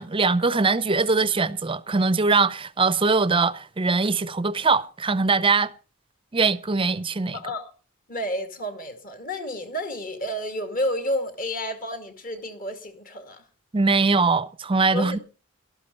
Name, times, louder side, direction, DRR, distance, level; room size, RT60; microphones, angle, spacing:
voice 1, 0.0-5.7 6.3-7.4 13.7-15.2, right 4 dB, 25° right, 0.6 m, -22 dB
voice 2, 7.3-7.7 8.1-13.5 14.9-15.2, equal, 40° left, 2.3 m, -30 dB
13.0 x 12.5 x 5.4 m
head